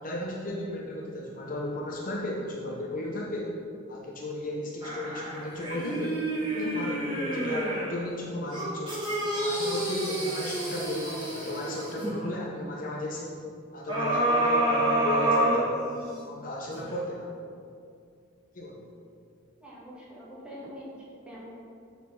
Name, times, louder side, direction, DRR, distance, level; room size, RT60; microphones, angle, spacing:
voice 1, 0.0-3.5 3.9-6.2 6.5-9.0 9.3-13.4 13.7-15.9 16.3-17.3 18.5-18.9, left 1 dB, 40° left, -2 dB, 0.7 m, -35 dB
sound 1, 4.8-8.0 8.5-12.1 13.9-16.2 16.7-16.8, right 1 dB, 25° right, 1.7 m, -28 dB
voice 2, 19.6-21.5, equal, 5° right, -7 dB, 1.5 m, -44 dB
6.5 x 4.1 x 5.6 m, 2.4 s
head